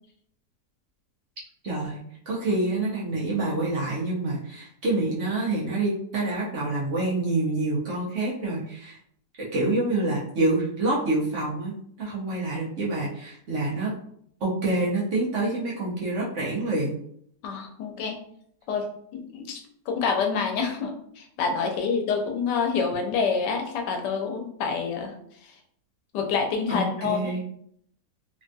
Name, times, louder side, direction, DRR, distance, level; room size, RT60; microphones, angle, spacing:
voice 1, 1.6-2.0 2.3-9.0 9.4-13.9 14.4-16.9 26.7-27.4, right 2 dB, 60° right, -5 dB, 0.9 m, -27 dB
voice 2, 17.4-18.2 18.7-25.1 25.4-25.5 26.1-27.3, left 5 dB, 85° left, 4 dB, 1.2 m, -27 dB
3.2 x 2.3 x 2.6 m, 0.67 s
omnidirectional pair, 1.8 m